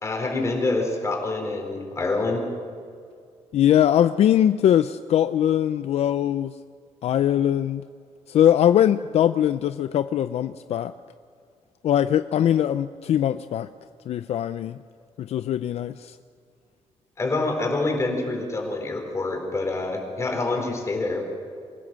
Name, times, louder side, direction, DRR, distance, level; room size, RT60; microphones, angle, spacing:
voice 1, 0.0-2.4 17.2-21.3, left 2 dB, 25° left, 2 dB, 4.1 m, -26 dB
voice 2, 3.5-6.5 7.0-7.8 8.3-10.9 11.8-13.7 14.1-14.8 15.2-16.2, left 10 dB, 65° left, 12 dB, 0.5 m, -21 dB
25.5 x 16.0 x 7.5 m, 2.2 s
cardioid pair, 150°, 12 cm